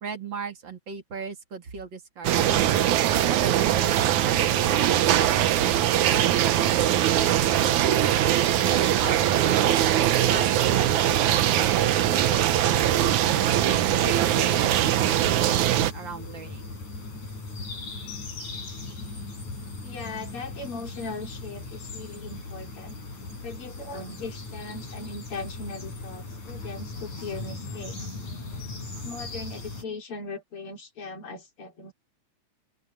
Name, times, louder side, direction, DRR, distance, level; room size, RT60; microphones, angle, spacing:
voice 1, 0.0-2.6 3.3-7.7 8.5-11.8 13.6-16.7, right 5 dB, 40° right, 2.4 m, -38 dB
sound 1, 2.2-15.9, right 11 dB, 80° right, 2.4 m, -22 dB
sound 2, 13.2-29.8, left 3 dB, 70° left, 9.5 m, -38 dB
voice 2, 19.8-23.0 23.4-28.1 29.0-31.9, left 3 dB, 45° left, 4.1 m, -39 dB
open air
omnidirectional pair, 3.4 m